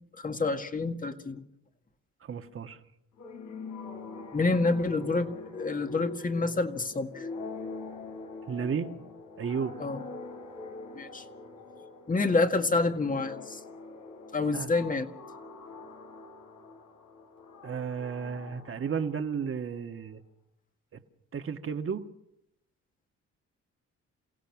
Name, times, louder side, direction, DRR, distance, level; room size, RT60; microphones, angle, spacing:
voice 1, 0.2-1.4 4.3-7.3 9.8-10.0 10.9-11.2 12.1-13.6 14.3-15.1, left 3 dB, 25° left, 6 dB, 2.0 m, -28 dB
voice 2, 2.2-2.8 8.5-8.9 9.4-9.8 14.5-14.7 17.6-20.2 20.9-21.0 21.3-22.1, right 6 dB, 45° right, 7 dB, 1.7 m, -33 dB
sound 1, 3.2-19.6, left 4 dB, 80° left, 4.3 m, -44 dB
29.0 x 16.5 x 6.0 m, 0.80 s
cardioid pair, 90°, 30 cm